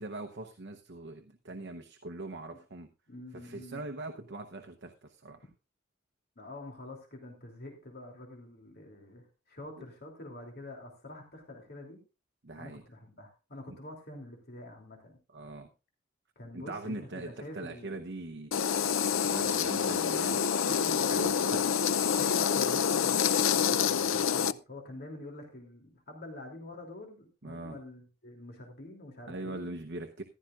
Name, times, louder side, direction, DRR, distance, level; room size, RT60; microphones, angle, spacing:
voice 1, 0.0-2.9 3.3-5.4 12.4-12.8 13.7-13.8 15.3-15.7 16.5-18.5 19.1-21.7 27.4-27.8 29.3-30.2, right 2 dB, 55° right, 5 dB, 0.9 m, -41 dB
voice 2, 3.1-3.9 6.4-12.0 12.5-15.1 16.4-18.0 22.1-29.7, left 1 dB, 50° left, 1 dB, 3.0 m, -46 dB
sound 1, 18.5-24.5, left 7 dB, 75° left, 0.5 m, -27 dB
15.0 x 12.0 x 2.5 m, 0.30 s
head